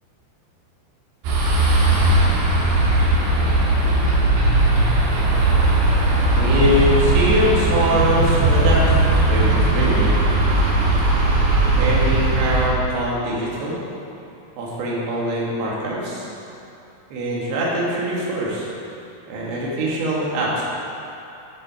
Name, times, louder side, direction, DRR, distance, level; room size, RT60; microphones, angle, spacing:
sound 1, 1.2-12.7, right 2 dB, 90° right, 3.8 m, -18 dB
voice 1, 6.2-10.4 11.8-13.8 14.6-16.3 17.1-18.7 19.3-20.6, equal, 70° right, -5 dB, 3.5 m, -23 dB
10.5 x 6.1 x 4.9 m, 2.8 s
omnidirectional pair, 4.9 m